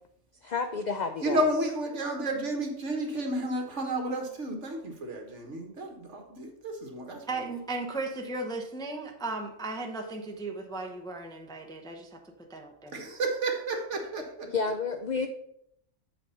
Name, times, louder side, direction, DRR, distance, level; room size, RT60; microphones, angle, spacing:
voice 1, 0.4-1.5 14.5-15.3, left 5 dB, 65° left, 7 dB, 0.4 m, -30 dB
voice 2, 1.2-7.4 12.9-14.5, right 1 dB, 65° right, 3 dB, 1.7 m, -31 dB
voice 3, 7.3-12.2 12.5-13.0, right 3 dB, 5° left, 3 dB, 0.6 m, -36 dB
7.9 x 4.2 x 5.6 m, 0.74 s
omnidirectional pair, 1.4 m